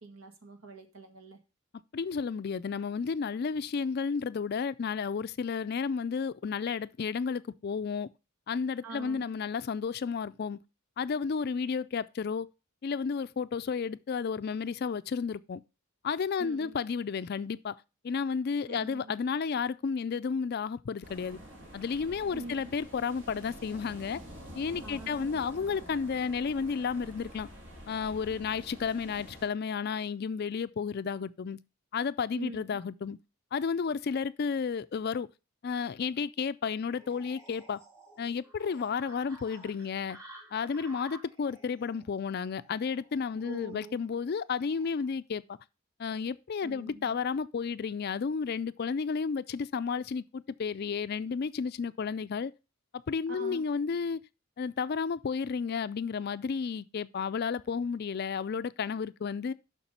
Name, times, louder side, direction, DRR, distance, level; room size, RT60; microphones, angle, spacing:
voice 1, 0.0-1.4 8.8-9.2 16.4-16.7 18.7-19.1 22.3-22.6 24.8-25.3 32.4-32.8 43.4-44.0 46.6-47.2 53.3-53.7, right 2 dB, 75° right, 1.7 m, -44 dB
voice 2, 1.9-8.1 8.5-10.6 11.0-12.5 12.8-15.6 16.0-21.4 21.7-24.2 24.5-27.5 27.9-31.6 31.9-33.2 33.5-35.3 35.6-37.8 38.2-40.2 40.5-45.6 46.0-52.5 52.9-54.2 54.6-59.5, left 5 dB, 45° left, 0.4 m, -32 dB
sound 1, 21.0-29.5, equal, 60° right, 2.8 m, -48 dB
sound 2, 36.8-45.1, right 1 dB, 15° right, 2.7 m, -54 dB
7.2 x 5.9 x 5.4 m
head